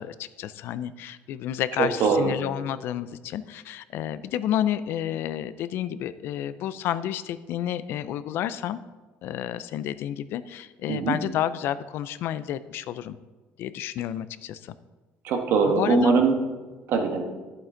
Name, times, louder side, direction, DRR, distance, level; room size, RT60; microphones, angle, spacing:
voice 1, 0.0-8.8 9.2-13.2 13.6-14.7 15.7-16.1, left 11 dB, 60° left, 15 dB, 0.4 m, -30 dB
voice 2, 1.8-2.3 10.9-11.2 15.2-16.3 16.9-17.3, right 4 dB, 55° right, 4 dB, 1.3 m, -22 dB
11.5 x 7.7 x 3.8 m, 1.2 s
cardioid pair, 165°, 4 cm